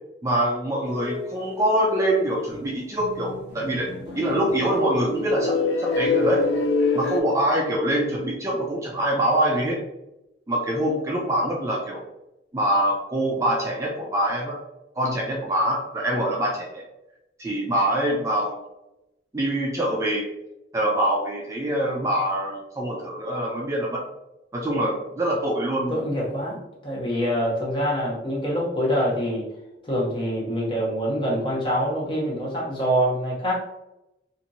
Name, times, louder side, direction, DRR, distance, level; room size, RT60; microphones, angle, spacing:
voice 1, 0.2-6.4 6.9-9.8 10.5-12.0 12.5-14.6 15.0-16.8 17.4-18.6 19.3-20.3 20.7-24.0 24.5-26.0, right 1 dB, 15° right, -2 dB, 0.3 m, -24 dB
sound 1, 0.8-1.9 2.2-2.3 2.5-2.7 3.0-7.2, left 4 dB, 80° left, 0.4 m, -26 dB
voice 2, 25.9-29.4 29.8-33.5, equal, 30° left, -4 dB, 0.8 m, -25 dB
2.8 x 2.5 x 2.6 m, 0.90 s
head